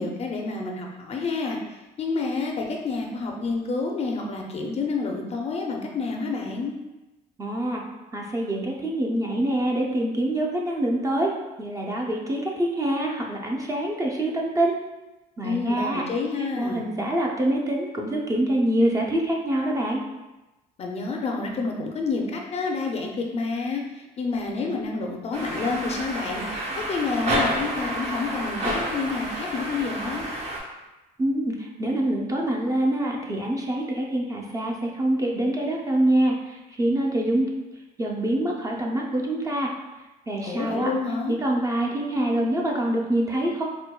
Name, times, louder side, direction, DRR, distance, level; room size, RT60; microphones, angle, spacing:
voice 1, 0.0-6.8 15.4-16.9 20.8-26.4 26.8-30.3 40.4-41.4, left 4 dB, 40° left, 1 dB, 0.4 m, -29 dB
voice 2, 7.4-7.8 8.1-11.3 11.6-14.8 15.4-16.0 16.6-20.0 31.2-37.5 38.0-39.7 40.3-40.9 41.3-43.6, right 1 dB, 20° right, -1 dB, 0.4 m, -25 dB
sound 1, 25.3-30.6, right 1 dB, 40° right, 0.8 m, -29 dB
4.4 x 2.2 x 2.2 m, 1.1 s
cardioid pair, 110°, 17 cm